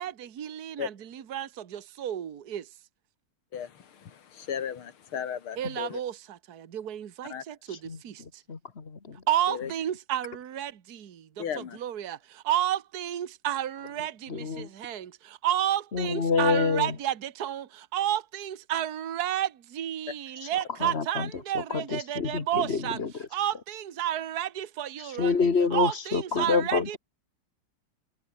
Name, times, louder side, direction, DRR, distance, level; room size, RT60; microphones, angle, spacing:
voice 1, 0.0-2.7 5.6-8.2 9.3-23.0 23.3-25.3 25.7-27.0, right 11 dB, 50° right, 1.8 m, -31 dB
voice 2, 3.5-6.0 7.3-7.4 9.5-9.7 11.4-11.8, left 8 dB, 80° left, 2.7 m, -35 dB
voice 3, 7.9-9.2 14.3-14.7 15.9-17.0 20.4-20.5 20.8-21.3 21.5-23.1 25.2-27.0, left 5 dB, 30° left, 2.0 m, -27 dB
omnidirectional pair, 2.3 m